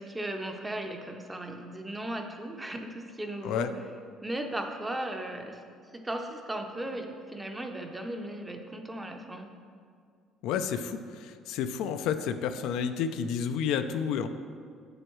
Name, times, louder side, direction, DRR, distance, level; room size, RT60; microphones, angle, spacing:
voice 1, 0.0-3.7 4.2-5.6 5.9-9.5, right 1 dB, 10° right, 4 dB, 0.6 m, -36 dB
voice 2, 10.4-14.3, left 7 dB, 80° left, 9 dB, 0.4 m, -30 dB
8.7 x 7.8 x 3.1 m, 2.2 s
cardioid pair, 150°, 0 cm